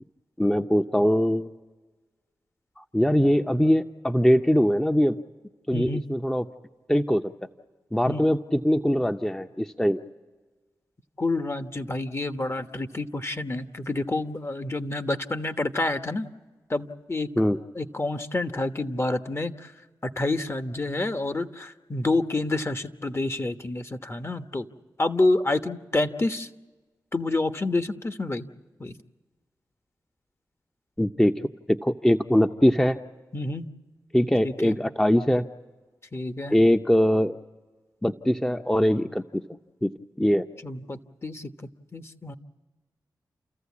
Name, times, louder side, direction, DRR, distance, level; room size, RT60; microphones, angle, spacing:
voice 1, 0.4-1.5 2.8-5.2 5.7-6.5 6.9-7.3 7.9-10.0 17.4-17.6 31.0-33.0 34.1-35.5 36.5-37.4 38.0-39.4 39.8-39.9 40.2-40.5, equal, 10° left, 6 dB, 0.8 m, -22 dB
voice 2, 5.7-6.0 8.1-8.3 11.2-16.3 16.7-17.3 17.7-19.7 20.0-24.7 25.0-26.5 27.1-28.4 28.8-28.9 33.3-33.7 34.4-34.8 36.1-36.6 40.6-41.5 41.9-42.3, left 2 dB, 35° left, 9 dB, 1.2 m, -28 dB
29.5 x 14.0 x 8.5 m, 1.3 s
cardioid pair, 40°, 8 cm